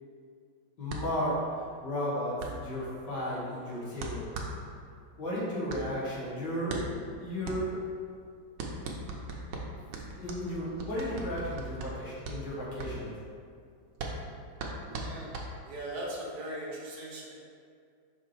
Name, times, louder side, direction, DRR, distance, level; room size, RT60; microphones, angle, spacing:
voice 1, 0.8-4.3 5.2-7.8 10.0-13.1, equal, 60° left, -6 dB, 2.0 m, -34 dB
sound 1, 0.9-16.0, right 2 dB, 80° right, 1.6 m, -40 dB
voice 2, 14.9-15.4 15.7-17.3, right 1 dB, 55° right, -4 dB, 1.6 m, -39 dB
5.7 x 4.4 x 4.5 m, 2.2 s
omnidirectional pair, 2.2 m